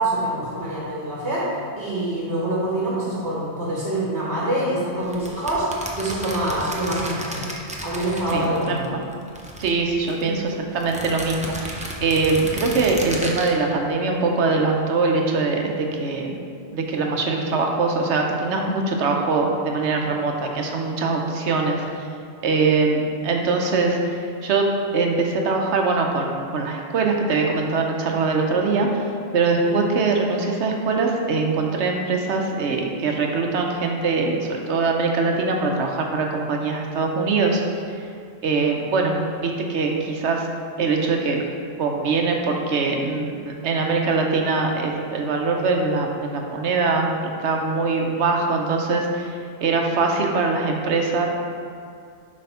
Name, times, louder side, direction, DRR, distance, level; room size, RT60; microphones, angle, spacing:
voice 1, 0.0-1.5 1.8-7.5 7.8-8.9 10.2-10.3 29.6-29.9, right 1 dB, 60° right, -7 dB, 1.7 m, -25 dB
sound 1, 5.1-8.9 9.1-10.2 10.8-13.5, right 1 dB, 10° right, 0.5 m, -33 dB
voice 2, 8.3-9.1 9.6-16.4 16.7-21.8 22.4-28.9 29.3-37.6 37.9-38.0 38.4-40.5 40.8-41.4 41.8-51.3, right 4 dB, 85° right, 1 dB, 1.1 m, -22 dB
7.6 x 3.4 x 5.6 m, 2.3 s
omnidirectional pair, 1.1 m